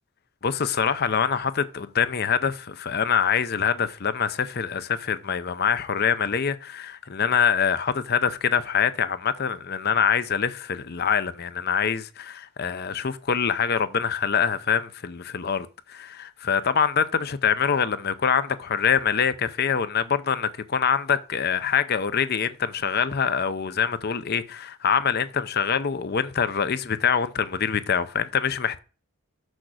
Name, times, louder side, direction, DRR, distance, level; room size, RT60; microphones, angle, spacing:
voice 1, 0.4-28.8, left 7 dB, 45° left, 0.6 m, -25 dB
6.4 x 5.9 x 6.3 m
head